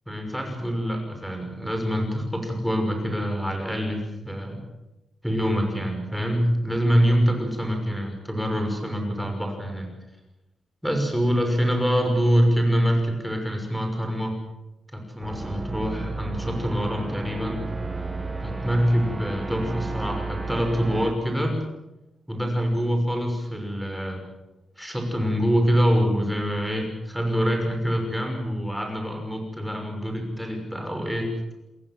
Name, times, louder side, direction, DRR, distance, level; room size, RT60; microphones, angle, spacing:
voice 1, 0.1-4.6 5.2-9.9 10.8-14.3 14.9-17.6 18.4-21.6 22.3-24.2 24.8-31.3, equal, ahead, 3 dB, 5.9 m, -25 dB
sound 1, 15.2-21.1, right 3 dB, 20° right, 2.2 m, -33 dB
27.5 x 21.5 x 7.6 m, 0.96 s
wide cardioid pair, 155°, 0 cm